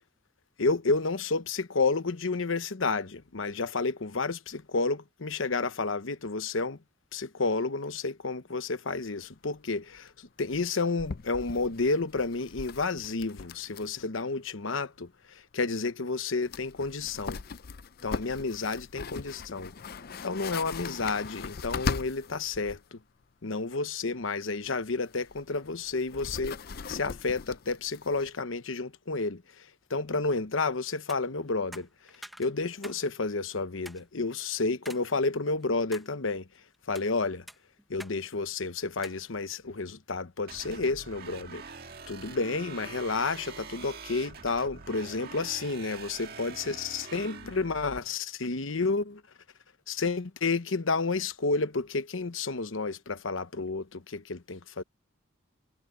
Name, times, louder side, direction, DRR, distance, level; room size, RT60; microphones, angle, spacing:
voice 1, 0.6-6.8 7.1-17.4 18.0-19.7 20.2-23.0 23.4-26.6 26.9-36.5 36.9-37.4 37.9-41.6 42.1-49.2 49.9-54.8, left 3 dB, 75° left, 1.0 m, -31 dB
Cardboard Box Opening, 9.2-9.3 9.5-9.6 9.9-10.1 10.5-14.1 14.3-14.4 16.1-16.2 16.4-22.8 24.7-28.3, left 5 dB, 50° left, 0.5 m, -39 dB
OM-FR-magnets, 31.1-31.2 31.7-33.0 33.4-33.5 33.9-34.0 34.9-35.1 35.5-36.1 36.7-37.1 37.5-38.2 38.4-38.5 39.0-39.2, equal, ahead, 0.9 m, -46 dB
sound 1, 40.5-48.0, right 4 dB, 50° right, 1.8 m, -45 dB
head